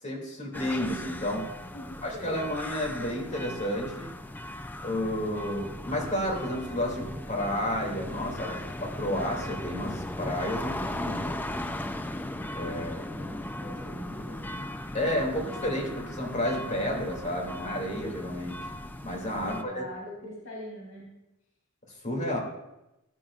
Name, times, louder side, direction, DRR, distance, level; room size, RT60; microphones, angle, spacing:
voice 1, 0.0-1.5 2.0-4.1 4.8-11.7 12.5-13.2 14.9-18.5 19.0-19.8 22.0-22.4, left 1 dB, 35° left, 0 dB, 2.7 m, -31 dB
sound 1, 0.5-19.6, left 1 dB, 10° left, 0.4 m, -37 dB
voice 2, 1.7-2.5 10.5-11.7 13.1-13.3 13.6-14.6 19.4-21.1, left 1 dB, 80° left, -5 dB, 3.9 m, -43 dB
15.5 x 9.8 x 2.5 m, 0.95 s
head